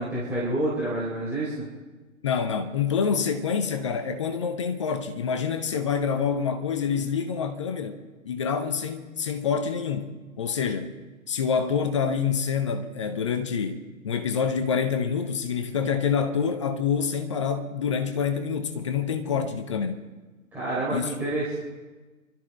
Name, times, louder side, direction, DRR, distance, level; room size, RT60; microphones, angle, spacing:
voice 1, 0.0-1.7 20.5-21.6, right 1 dB, 5° right, 3.8 m, -28 dB
voice 2, 2.2-8.0 8.2-10.9 11.3-20.1 20.9-21.1, left 6 dB, 20° left, 0.7 m, -27 dB
29.0 x 13.0 x 3.4 m
figure-of-eight pair, 135°, 42 cm